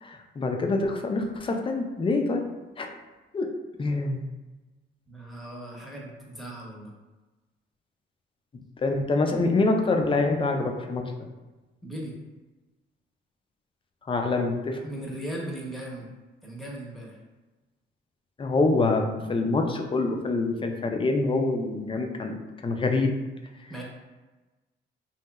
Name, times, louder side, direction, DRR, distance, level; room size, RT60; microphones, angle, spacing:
voice 1, 0.0-2.4 2.8-2.9 3.3-3.5 3.8-4.2 8.8-11.0 14.1-14.8 18.4-22.4 22.6-23.1, left 3 dB, 25° left, 3 dB, 0.4 m, -25 dB
voice 2, 5.1-6.9 11.8-12.1 14.8-16.0 16.4-17.2 23.7-23.8, right 1 dB, ahead, -3 dB, 0.8 m, -37 dB
2.9 x 2.7 x 2.3 m, 1.2 s
cardioid pair, 90°, 20 cm